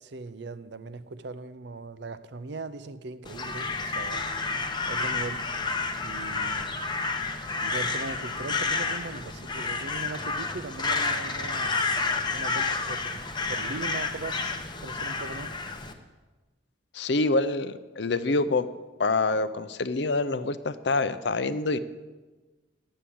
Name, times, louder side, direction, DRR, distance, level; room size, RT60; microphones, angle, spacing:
voice 1, 0.0-4.3 4.9-5.5 6.0-6.8 7.6-11.8 12.3-14.5 14.8-15.6, right 3 dB, 60° right, 0.6 m, -39 dB
Crow, 3.2-15.9, left 3 dB, 25° left, 0.8 m, -30 dB
voice 2, 16.9-18.7 19.0-21.8, left 3 dB, 60° left, 0.6 m, -26 dB
11.0 x 7.5 x 8.5 m
head